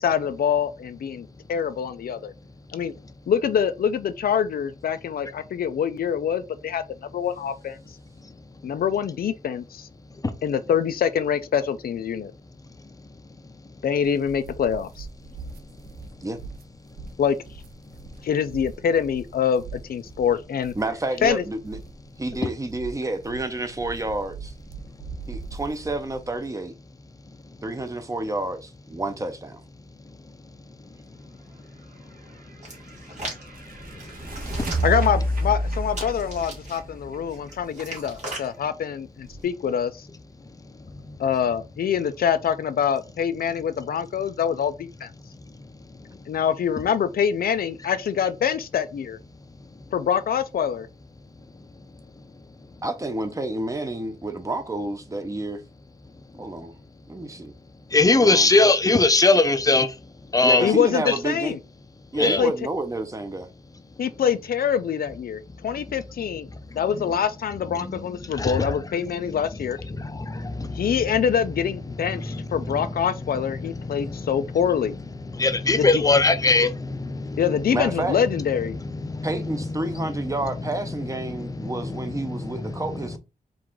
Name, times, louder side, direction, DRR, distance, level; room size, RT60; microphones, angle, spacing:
voice 1, 0.0-2.3 2.7-2.9 3.3-6.8 7.1-7.8 8.6-9.9 10.4-12.3 13.8-15.1 17.2-17.4 18.2-20.7 21.2-21.4 34.8-40.1 41.2-45.1 46.3-49.2 49.9-50.9 60.6-61.6 62.2-62.5 64.0-66.5 66.7-69.8 70.7-75.0 75.8-75.9 77.4-78.8, left 8 dB, 75° left, 0.4 m, -25 dB
voice 2, 8.2-8.8 10.1-10.4 12.6-13.7 15.3-16.3 16.8-17.2 17.8-18.3 22.0-22.5 24.8-25.6 27.2-28.0 29.8-34.8 37.4-37.5 40.4-41.2 45.2-46.4 49.3-49.8 51.4-52.9 56.3-56.7 57.3-57.5 57.9-60.8 61.1-61.2 62.1-62.4 63.7-63.8 65.9-66.0 66.5-67.1 67.7-69.4 69.8-71.3 71.9-74.7 75.1-83.2, left 3 dB, 25° left, 0.5 m, -27 dB
sound 1, 14.0-26.4, right 4 dB, 85° right, 0.5 m, -42 dB
voice 3, 20.8-21.8 22.2-24.5 25.3-26.7 27.6-29.6 52.8-55.6 56.4-56.7 57.1-57.5 58.1-58.4 60.4-61.6 62.1-63.5 77.7-78.2 79.2-83.2, right 2 dB, 20° right, 0.6 m, -29 dB
sound 2, 32.1-37.9, right 1 dB, 70° right, 1.3 m, -29 dB
Hands, 32.6-33.4 34.0-35.0 35.9-36.8 37.3-38.5 39.2-39.4, right 2 dB, 50° right, 2.2 m, -37 dB
4.7 x 2.5 x 3.6 m
wide cardioid pair, 125°, 15 cm